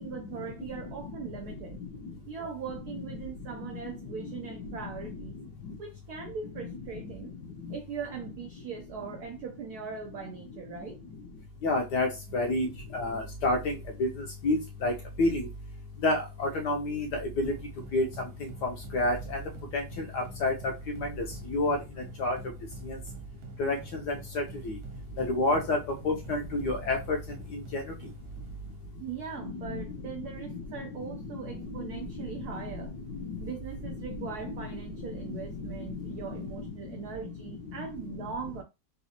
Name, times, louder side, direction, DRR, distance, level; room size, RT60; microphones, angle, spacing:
voice 1, 0.0-1.8 2.3-5.3 5.8-7.3 7.7-11.0 29.0-32.9 33.4-38.6, right 6 dB, 90° right, 0.8 m, -40 dB
voice 2, 11.6-12.1 12.3-12.7 12.9-13.6 14.0-14.1 14.4-14.9 15.2-15.4 16.0-17.1 17.4-17.5 17.9-18.0 18.9-19.4 19.7-19.8 20.1-20.5 21.5-21.8 22.2-22.4 23.6-23.8 24.3-24.4 25.2-25.8 26.0-27.2 27.7-27.8, left 2 dB, 70° left, 1.0 m, -27 dB
sound 1, 17.4-28.9, right 3 dB, 70° right, 1.6 m, -48 dB
4.0 x 2.4 x 2.8 m
omnidirectional pair, 2.3 m